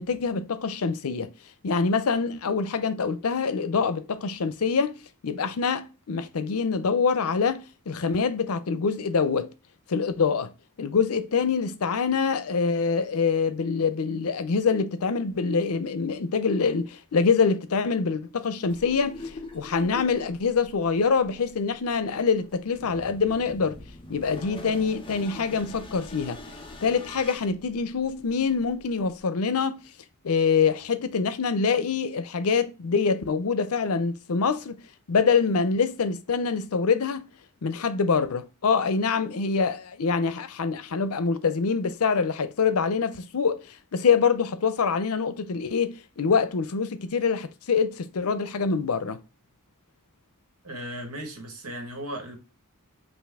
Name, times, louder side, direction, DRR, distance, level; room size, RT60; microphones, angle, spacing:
voice 1, 0.0-1.3 1.6-5.0 5.2-9.5 9.9-10.5 10.8-23.8 24.1-26.4 26.8-29.8 30.2-34.8 35.1-37.3 37.6-49.2, left 5 dB, 75° left, 0.6 m, -25 dB
sound 1, 18.7-29.2, left 2 dB, 25° left, 0.6 m, -44 dB
voice 2, 50.6-52.4, equal, 90° right, 1.5 m, -36 dB
5.8 x 2.5 x 3.6 m
head